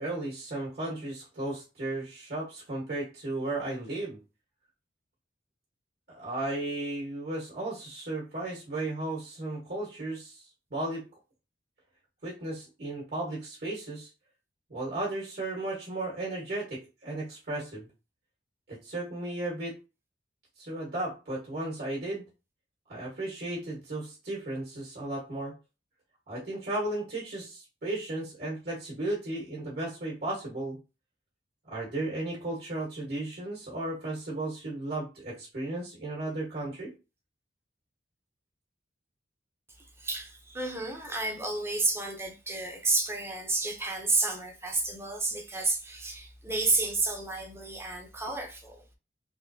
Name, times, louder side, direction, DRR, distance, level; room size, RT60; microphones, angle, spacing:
voice 1, 0.0-4.2 6.1-11.0 12.2-14.1 14.7-17.9 18.7-19.8 20.6-22.2 22.9-25.5 26.3-30.8 31.7-36.9, right 2 dB, 55° right, 1.5 m, -35 dB
voice 2, 40.0-48.8, right 3 dB, 15° right, 0.7 m, -31 dB
3.5 x 3.1 x 2.7 m
head